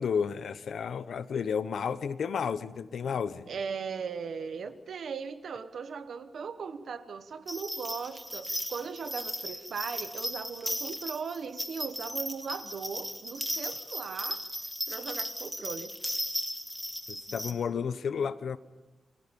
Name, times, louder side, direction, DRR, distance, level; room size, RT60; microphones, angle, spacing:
voice 1, 0.0-3.5 17.1-18.6, left 6 dB, 75° left, 13 dB, 1.0 m, -32 dB
voice 2, 3.5-14.4 14.9-15.9, right 6 dB, 70° right, 10 dB, 1.3 m, -38 dB
sound 1, 7.5-17.5, equal, ahead, 1.7 m, -36 dB
30.0 x 22.0 x 5.4 m, 1.1 s
wide cardioid pair, 170°, 0 cm